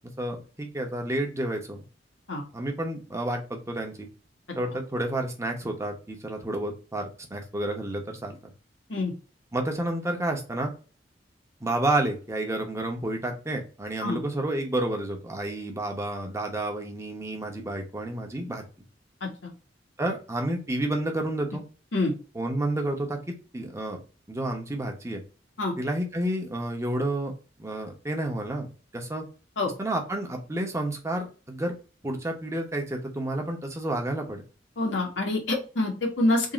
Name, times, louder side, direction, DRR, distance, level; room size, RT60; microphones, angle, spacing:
voice 1, 0.2-1.8 2.5-4.1 4.5-7.0 7.3-8.5 9.5-10.7 11.6-18.6 20.0-21.6 22.3-24.0 24.3-25.2 25.8-27.3 27.6-28.7 28.9-29.2 29.8-31.7 32.0-34.4, right 1 dB, 15° right, 2 dB, 1.0 m, -30 dB
voice 2, 19.2-19.5 21.9-22.1 25.6-25.7 29.6-29.7 34.8-36.5, left 2 dB, 80° left, 0 dB, 1.5 m, -26 dB
3.7 x 2.7 x 4.0 m, 0.34 s
head